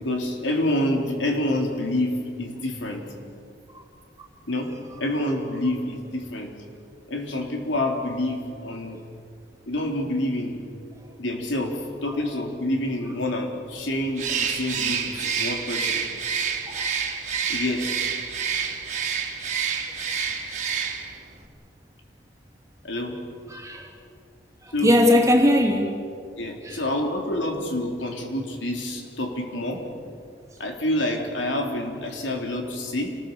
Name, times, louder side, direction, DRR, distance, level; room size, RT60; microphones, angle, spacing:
voice 1, 0.0-3.1 4.5-4.7 5.0-6.5 7.1-9.0 9.7-10.6 11.2-16.0 17.5-17.9 22.8-23.2 24.7-25.0 26.4-29.9 30.6-33.2, left 1 dB, 85° left, 2 dB, 3.9 m, -27 dB
Bird, 14.1-21.2, right 6 dB, 40° right, 2.4 m, -28 dB
voice 2, 23.5-23.9 24.6-25.9 26.6-26.8, left 1 dB, 15° right, 1 dB, 3.0 m, -20 dB
28.5 x 20.5 x 7.1 m, 2.4 s
head